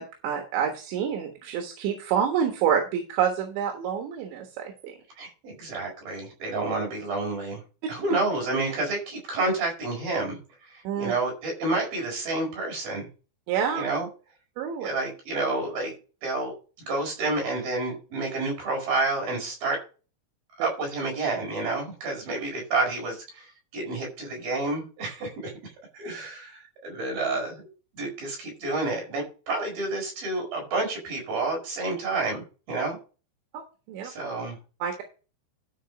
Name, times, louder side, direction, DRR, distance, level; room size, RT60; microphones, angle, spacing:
voice 1, 0.0-5.0 10.9-11.1 13.5-13.9 14.6-14.9 20.6-20.7 33.9-34.1 34.8-35.0, right 8 dB, 85° right, 3 dB, 3.7 m, -27 dB
voice 2, 5.2-7.6 7.9-10.4 10.7-13.1 13.7-14.1 14.8-15.9 16.2-19.8 20.6-25.5 25.9-27.7 27.9-33.0 34.0-34.6, right 2 dB, 55° right, 0 dB, 6.6 m, -29 dB
13.0 x 5.2 x 4.9 m, 0.34 s
omnidirectional pair, 5.1 m